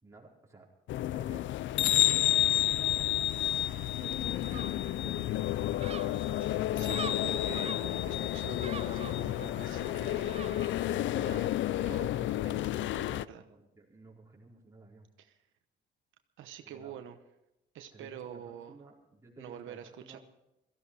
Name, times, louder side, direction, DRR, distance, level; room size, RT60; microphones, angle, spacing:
voice 1, 0.0-0.7 1.1-1.5 2.5-5.8 11.4-12.0 13.4-15.1 16.6-17.0 17.9-20.2, right 3 dB, 15° right, -4 dB, 4.7 m, -55 dB
sound 1, 0.9-13.3, left 13 dB, 70° left, 0.4 m, -30 dB
Gull seagull, 2.3-11.4, right 7 dB, 30° right, 0.5 m, -47 dB
voice 2, 6.4-10.4 11.1-13.5 15.2-15.4 16.4-17.2 17.7-18.7 19.4-20.2, right 9 dB, 80° right, 7 dB, 1.0 m, -46 dB
17.0 x 14.5 x 4.8 m, 0.88 s
cardioid pair, 90°, 20 cm